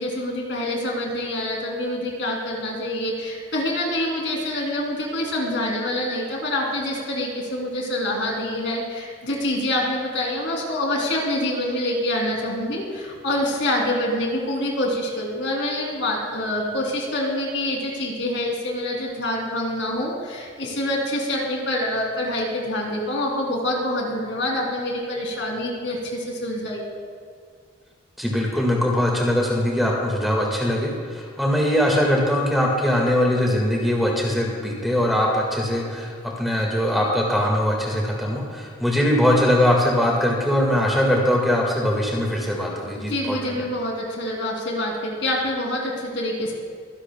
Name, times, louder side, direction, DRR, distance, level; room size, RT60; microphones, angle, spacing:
voice 1, 0.0-26.8 42.9-46.5, left 1 dB, 65° left, -1 dB, 2.9 m, -26 dB
voice 2, 28.2-36.1 36.4-43.6, left 1 dB, ahead, -2 dB, 1.7 m, -21 dB
24.5 x 11.5 x 2.2 m, 2.1 s
head